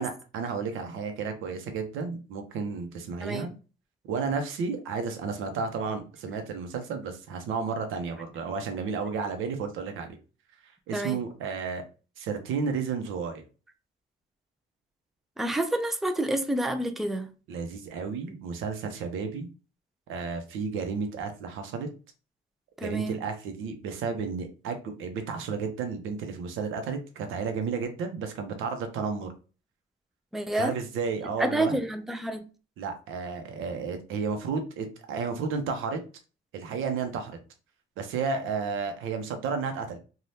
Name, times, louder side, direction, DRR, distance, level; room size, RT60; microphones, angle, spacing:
voice 1, 0.0-3.5 4.1-10.2 10.6-11.8 12.2-13.4 17.5-19.5 20.1-21.9 22.8-29.3 30.5-31.8 32.8-36.0 36.5-37.4 38.0-40.0, right 5 dB, 90° right, 0.7 m, -32 dB
voice 2, 3.2-3.5 10.9-11.2 15.4-17.3 22.8-23.2 30.3-30.7 31.4-32.4, right 1 dB, ahead, 0.4 m, -28 dB
3.3 x 2.3 x 2.7 m
cardioid pair, 90°, 20 cm